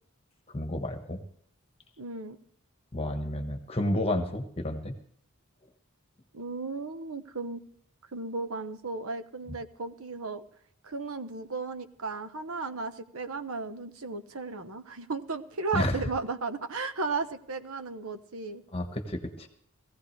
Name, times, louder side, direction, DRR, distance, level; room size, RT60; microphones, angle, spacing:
voice 1, 0.5-1.2 2.9-4.9 15.7-16.0 18.7-19.5, left 1 dB, 25° left, 5 dB, 1.3 m, -31 dB
voice 2, 2.0-2.4 6.3-7.6 8.1-10.4 10.8-18.6, right 4 dB, 80° right, 9 dB, 1.1 m, -35 dB
19.0 x 15.5 x 3.3 m, 0.63 s
head